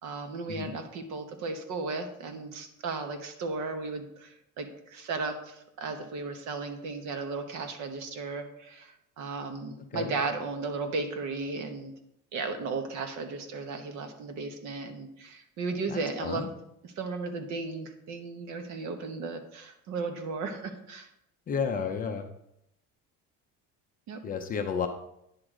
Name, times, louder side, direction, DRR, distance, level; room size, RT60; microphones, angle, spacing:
voice 1, 0.0-8.9 9.2-11.9 12.3-16.5 16.8-21.1 24.1-24.2, right 4 dB, 55° right, 6 dB, 1.1 m, -35 dB
voice 2, 15.9-16.5 21.5-22.3 24.2-24.9, left 6 dB, 25° left, 5 dB, 0.5 m, -32 dB
9.7 x 3.7 x 6.4 m, 0.78 s
cardioid pair, 175°, 33 cm